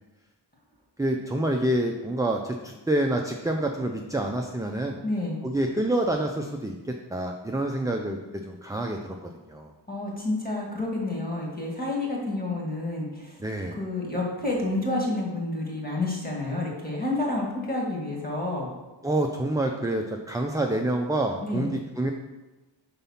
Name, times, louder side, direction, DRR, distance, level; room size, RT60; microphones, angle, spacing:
voice 1, 1.0-5.0 5.4-9.7 13.4-13.8 16.5-16.7 19.0-22.1, right 1 dB, 10° right, 2 dB, 0.4 m, -27 dB
voice 2, 5.0-5.4 9.9-13.4 13.8-18.7 21.4-21.7, left 2 dB, 20° left, -2 dB, 1.9 m, -29 dB
5.4 x 4.1 x 5.6 m, 1.1 s
wide cardioid pair, 50°, 48 cm